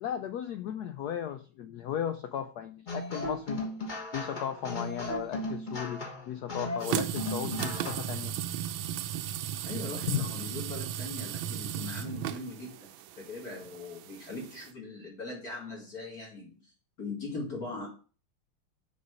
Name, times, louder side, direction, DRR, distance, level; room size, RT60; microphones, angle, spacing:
voice 1, 0.0-3.6 4.1-8.4 10.1-10.3, left 9 dB, 80° left, 9 dB, 0.8 m, -35 dB
sound 1, 2.9-8.2, left 1 dB, 30° left, 1.1 m, -36 dB
sound 2, 6.8-14.7, right 11 dB, 75° right, 1.3 m, -36 dB
voice 2, 9.7-16.6 17.0-17.9, left 3 dB, 45° left, -4 dB, 2.7 m, -40 dB
6.8 x 4.4 x 6.4 m, 0.37 s
omnidirectional pair, 2.3 m